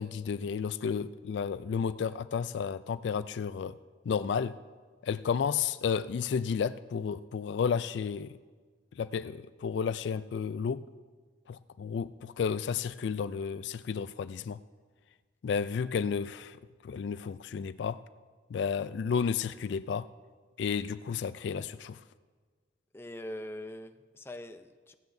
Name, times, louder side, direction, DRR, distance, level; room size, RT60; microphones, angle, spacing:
voice 1, 0.0-3.7 4.1-4.5 5.0-8.4 9.0-10.8 11.5-14.6 15.4-16.6 16.8-18.0 18.5-20.1 20.6-22.0, left 6 dB, 65° left, 14 dB, 0.3 m, -32 dB
voice 2, 22.9-24.9, left 1 dB, 15° left, 8 dB, 0.5 m, -42 dB
16.0 x 16.0 x 2.7 m, 1.5 s
head